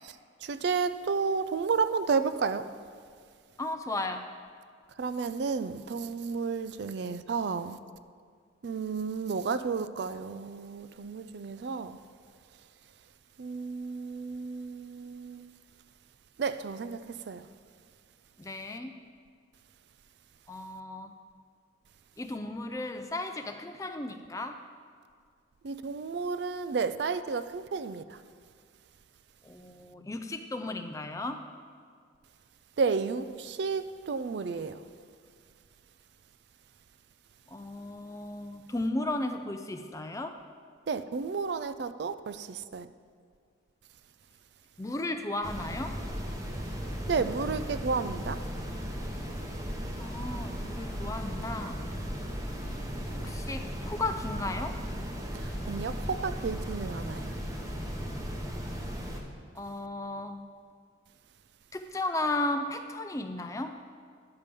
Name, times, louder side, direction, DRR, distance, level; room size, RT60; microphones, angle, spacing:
voice 1, 0.4-2.7 5.0-7.8 8.6-12.0 13.4-15.5 16.4-17.0 17.3-17.5 25.6-28.0 32.8-34.8 40.9-42.9 47.1-48.4 55.3-57.3, right 5 dB, 60° right, 0.4 m, -32 dB
voice 2, 3.6-4.3 18.4-18.9 20.5-21.1 22.2-24.6 29.4-31.5 37.5-40.4 44.8-46.0 50.0-51.8 53.1-54.8 59.5-60.4 61.7-63.8, left 2 dB, 15° left, 0.4 m, -35 dB
sound 1, 45.4-59.2, equal, 15° right, 0.8 m, -36 dB
9.9 x 6.8 x 5.2 m
head